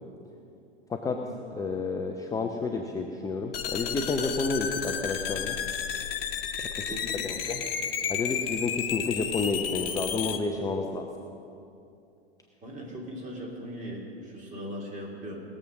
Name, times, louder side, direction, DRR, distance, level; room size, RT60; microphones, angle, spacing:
voice 1, 1.6-5.6 6.8-7.1 7.5-7.6 8.1-11.1, left 3 dB, 10° left, 3 dB, 0.6 m, -30 dB
sound 1, 3.5-10.4, left 8 dB, 60° left, 1.0 m, -32 dB
voice 2, 6.9-7.3 12.6-15.4, equal, 25° right, -1 dB, 3.0 m, -39 dB
19.0 x 7.4 x 6.2 m, 2.7 s
figure-of-eight pair, 95°, 31 cm